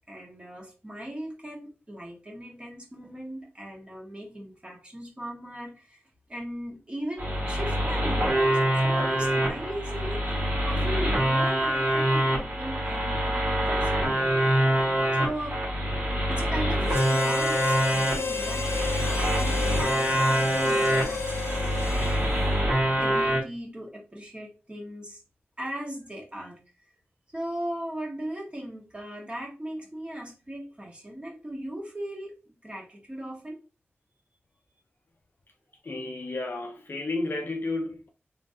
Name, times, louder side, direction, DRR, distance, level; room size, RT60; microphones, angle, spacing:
voice 1, 0.1-6.0 6.3-14.5 15.2-15.6 16.3-22.5 23.0-25.2 25.6-26.6 27.3-32.4 32.6-33.6, equal, 25° right, 1.5 m, -38 dB
sound 1, 7.2-23.4, equal, 45° right, 1.7 m, -25 dB
Harmonica, 16.9-22.5, left 5 dB, 90° left, 0.6 m, -32 dB
voice 2, 35.8-38.1, left 2 dB, 55° left, 0.7 m, -32 dB
3.7 x 3.6 x 2.7 m
wide cardioid pair, 80°, 4 cm